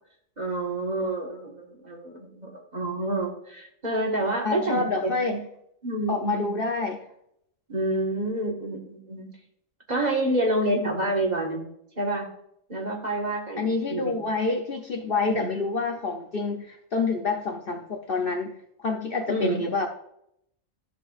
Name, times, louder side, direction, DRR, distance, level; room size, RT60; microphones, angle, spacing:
voice 1, 0.4-5.4 5.8-6.6 7.7-9.3 9.9-11.6 12.0-12.3 12.7-14.3 15.3-15.5 19.3-19.7, right 1 dB, 35° right, -1 dB, 1.7 m, -28 dB
voice 2, 4.4-5.4 6.1-7.0 13.6-19.9, left 3 dB, 50° left, 4 dB, 0.8 m, -27 dB
14.0 x 6.2 x 2.5 m, 0.75 s
omnidirectional pair, 1.3 m